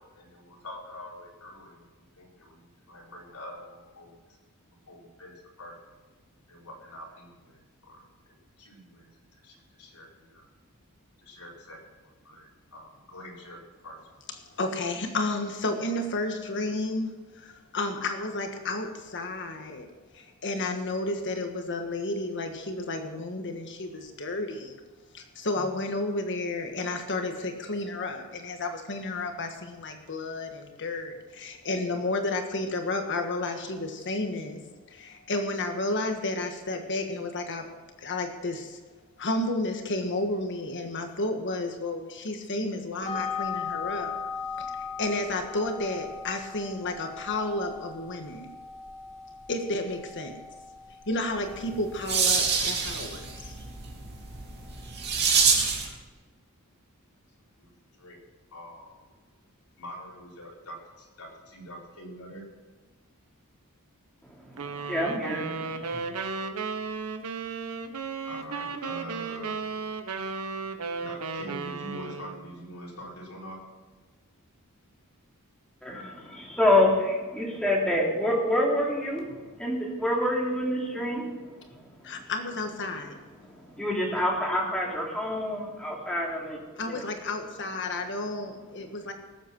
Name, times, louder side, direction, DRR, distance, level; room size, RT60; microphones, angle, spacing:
voice 1, 0.1-1.9 2.1-4.2 4.9-5.9 6.5-10.5 11.2-14.0 57.6-57.7 58.0-58.2 58.5-59.1 59.8-62.4 68.2-69.7 71.0-73.8, equal, 85° left, -3 dB, 4.3 m, -45 dB
voice 2, 14.6-19.9 20.1-24.8 25.1-34.6 34.9-37.6 38.0-38.8 39.2-44.1 44.6-48.5 49.5-50.4 51.1-53.2 82.0-83.2 86.8-89.1, left 2 dB, 55° left, 5 dB, 1.5 m, -32 dB
sound 1, 43.0-55.4, left 6 dB, 30° left, 2.9 m, -39 dB
sound 2, 51.5-55.9, right 5 dB, 50° right, 2.5 m, -26 dB
voice 3, 64.4-66.0 75.8-82.1 83.4-86.6 86.9-87.0, left 1 dB, 5° left, -3 dB, 2.9 m, -27 dB
sound 3, 64.6-72.5, right 4 dB, 80° right, 1.1 m, -34 dB
18.5 x 8.1 x 6.1 m, 1.3 s
head